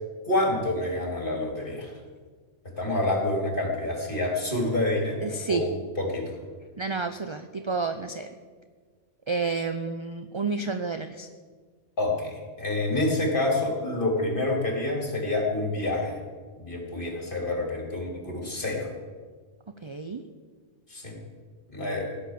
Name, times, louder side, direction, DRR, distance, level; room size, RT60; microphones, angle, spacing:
voice 1, 0.2-1.9 2.8-6.4 12.0-16.2 16.6-18.9 20.9-21.1 21.7-22.2, left 2 dB, 45° left, 0 dB, 3.9 m, -28 dB
voice 2, 5.2-5.7 6.8-8.3 9.3-11.3 19.8-20.3, right 4 dB, 30° right, 8 dB, 0.6 m, -30 dB
17.0 x 10.5 x 7.6 m, 1.5 s
omnidirectional pair, 1.3 m